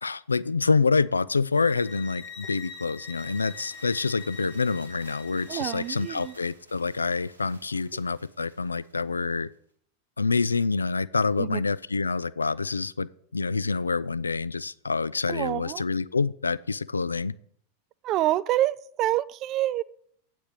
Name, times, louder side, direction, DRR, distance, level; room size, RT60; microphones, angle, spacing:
voice 1, 0.0-9.5 10.2-13.1 13.3-17.3, left 4 dB, 75° left, 18 dB, 0.3 m, -27 dB
sound 1, 1.6-6.5, left 5 dB, 30° left, 1.3 m, -44 dB
sound 2, 3.1-9.5, right 2 dB, 90° right, 2.0 m, -55 dB
voice 2, 5.5-6.3 11.4-11.6 15.3-15.8 18.0-19.8, right 14 dB, 35° right, 19 dB, 0.4 m, -27 dB
8.6 x 6.1 x 7.5 m, 0.63 s
figure-of-eight pair, 90°, 0 cm